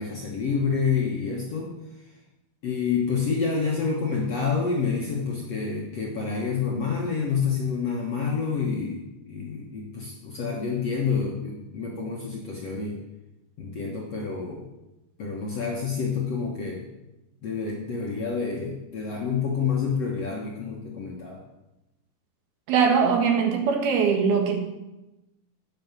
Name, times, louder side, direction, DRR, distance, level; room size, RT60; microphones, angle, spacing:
voice 1, 0.0-1.7 2.6-13.0 13.6-14.7 15.2-16.9 17.4-21.4, left 5 dB, 55° left, -2 dB, 1.8 m, -28 dB
voice 2, 22.7-24.6, right 6 dB, 70° right, 3 dB, 3.4 m, -21 dB
9.7 x 9.3 x 7.5 m, 0.98 s
omnidirectional pair, 4.8 m